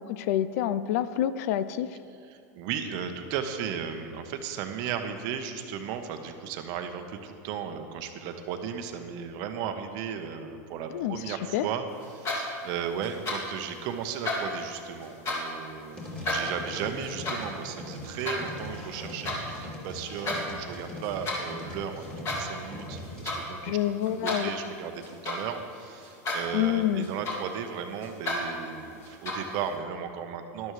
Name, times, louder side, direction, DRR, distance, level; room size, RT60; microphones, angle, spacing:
voice 1, 0.1-1.9 10.9-11.6 23.6-24.5 26.5-27.1, left 11 dB, 65° left, 14 dB, 0.4 m, -27 dB
voice 2, 2.3-23.8 24.1-30.7, right 7 dB, 50° right, 7 dB, 0.9 m, -35 dB
sound 1, 12.0-12.7 13.0-13.6 14.0-15.6 16.0-19.4 19.9-20.4 20.7-21.5 22.0-22.6 22.9-23.5 23.8-25.6 26.0-26.6 26.8-27.7 28.0-28.4 29.0-29.6, left 2 dB, 30° left, 2.4 m, -33 dB
sound 2, 15.9-23.3, equal, 10° left, 2.7 m, -41 dB
12.5 x 11.5 x 3.2 m, 2.6 s
supercardioid pair, 140°, 9 cm